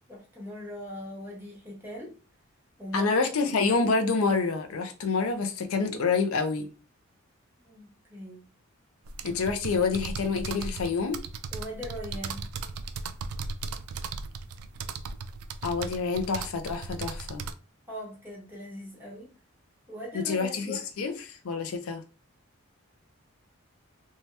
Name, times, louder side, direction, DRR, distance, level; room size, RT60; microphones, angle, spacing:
voice 1, 0.1-2.2 2.8-3.2 3.5-3.6 7.6-8.4 11.5-12.5 17.9-19.3 19.9-21.2, left 1 dB, 10° right, 1.0 m, -40 dB
voice 2, 2.9-6.7 9.2-11.2 15.6-17.4 20.2-21.1 21.4-22.0, left 4 dB, 75° left, 0.5 m, -27 dB
sound 1, 9.1-17.5, right 4 dB, 90° right, 0.3 m, -37 dB
2.7 x 2.2 x 3.1 m
head